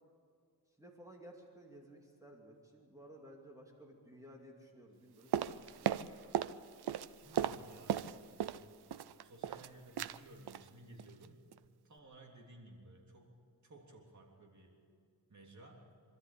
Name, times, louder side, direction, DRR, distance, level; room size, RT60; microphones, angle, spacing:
voice 1, 0.7-5.9, equal, 10° right, 0 dB, 2.6 m, -56 dB
sound 1, 5.3-6.6 6.8-8.6 8.9-9.7 10.0-10.2 10.5-10.7 11.0-11.3 11.5-11.6, right 10 dB, 75° right, 0.6 m, -36 dB
voice 2, 7.2-8.8 9.2-11.4 11.8-14.8 15.3-16.0, right 1 dB, 45° right, 0 dB, 3.3 m, -57 dB
25.5 x 13.0 x 8.7 m, 2.3 s
wide cardioid pair, 120°, 39 cm